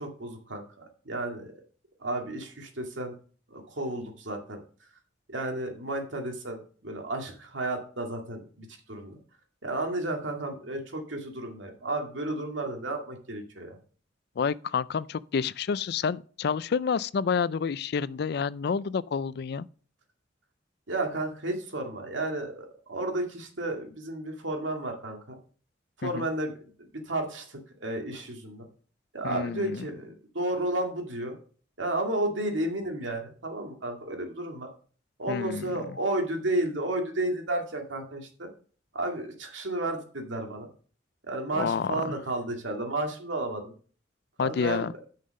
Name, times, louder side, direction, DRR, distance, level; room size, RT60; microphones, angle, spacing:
voice 1, 0.0-1.5 2.0-3.1 3.5-4.6 5.3-9.1 9.6-13.8 20.9-25.4 26.0-26.5 27.1-28.7 29.1-31.4 31.8-34.7 35.2-38.5 38.9-40.7 41.3-43.7 44.4-44.9, right 1 dB, 90° right, 2.2 m, -32 dB
voice 2, 14.4-19.7 26.0-26.3 29.2-29.8 35.3-35.7 41.6-42.0 44.4-44.9, left 6 dB, 60° left, 0.4 m, -29 dB
10.0 x 5.7 x 5.2 m
head